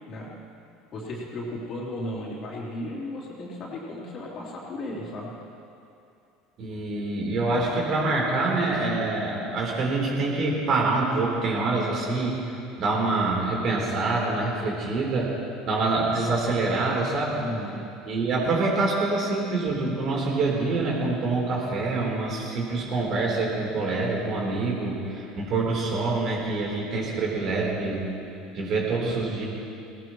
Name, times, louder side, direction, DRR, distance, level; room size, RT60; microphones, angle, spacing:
voice 1, 0.9-5.3 17.4-17.8, left 1 dB, 40° left, -4 dB, 3.4 m, -35 dB
voice 2, 6.6-12.4 12.8-15.3 15.7-17.4 18.1-28.1 28.5-29.5, right 3 dB, 45° right, -2 dB, 3.7 m, -26 dB
18.5 x 18.0 x 3.1 m, 2.6 s
figure-of-eight pair, 70°, 0 cm